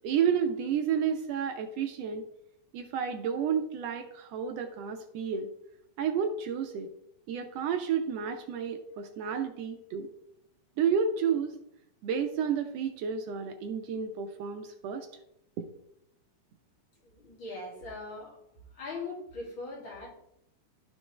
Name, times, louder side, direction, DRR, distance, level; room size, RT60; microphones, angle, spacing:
voice 1, 0.0-2.2 2.7-5.5 6.0-6.9 7.3-10.1 10.8-11.6 12.0-15.1 15.6-15.7, right 7 dB, 75° right, 6 dB, 1.5 m, -31 dB
voice 2, 17.0-18.4 18.7-20.1, left 3 dB, 45° left, -4 dB, 2.9 m, -40 dB
12.5 x 4.5 x 3.2 m, 0.78 s
omnidirectional pair, 3.4 m